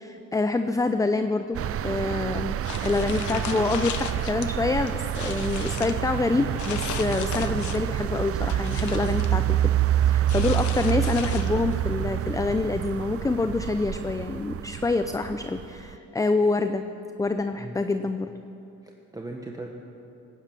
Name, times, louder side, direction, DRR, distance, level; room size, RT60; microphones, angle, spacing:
voice 1, 0.0-16.9 17.2-18.3, left 3 dB, 10° left, 9 dB, 0.5 m, -26 dB
sound 1, 1.5-15.9, right 12 dB, 50° right, 0.5 m, -27 dB
sound 2, 2.6-4.5 4.9-6.0 6.6-7.9 8.3-9.3 10.3-11.8, left 9 dB, 75° left, 1.0 m, -36 dB
voice 2, 18.8-19.7, right 2 dB, 10° right, 0 dB, 1.3 m, -38 dB
18.5 x 10.5 x 7.5 m, 2.9 s
cardioid pair, 90°, 30 cm